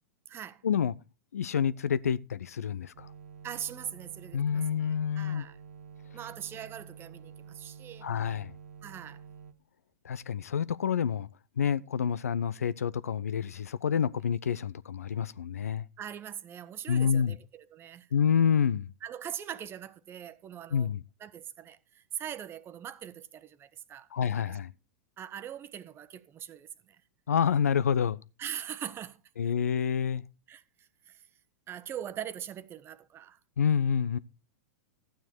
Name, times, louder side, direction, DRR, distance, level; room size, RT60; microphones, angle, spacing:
voice 1, 0.3-0.6 3.4-5.6 6.1-8.1 8.8-9.2 16.0-18.1 19.0-20.9 21.2-24.6 25.2-27.0 28.4-29.2 30.5-31.3 31.7-33.4, right 9 dB, 30° right, 1.0 m, -42 dB
voice 2, 1.3-3.1 4.3-5.4 8.0-8.5 10.0-11.3 11.6-15.8 16.9-17.4 18.1-18.9 20.7-21.0 24.1-24.7 27.3-28.2 29.4-30.2 33.6-34.2, left 7 dB, 80° left, 0.5 m, -28 dB
sound 1, 2.9-9.5, right 6 dB, 75° right, 1.3 m, -49 dB
12.5 x 9.2 x 4.4 m
hypercardioid pair, 100°, 8 cm